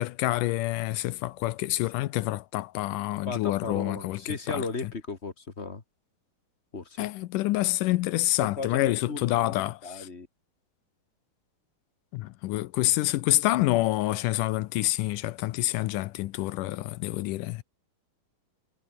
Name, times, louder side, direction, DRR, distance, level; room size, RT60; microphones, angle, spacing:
voice 1, 0.0-4.2 4.5-4.6 7.0-10.1 12.1-17.6, left 17 dB, 75° left, 2.1 m, -27 dB
voice 2, 3.2-5.8 6.7-7.1 8.4-10.3, left 4 dB, 25° left, 1.6 m, -36 dB
omnidirectional pair, 4.1 m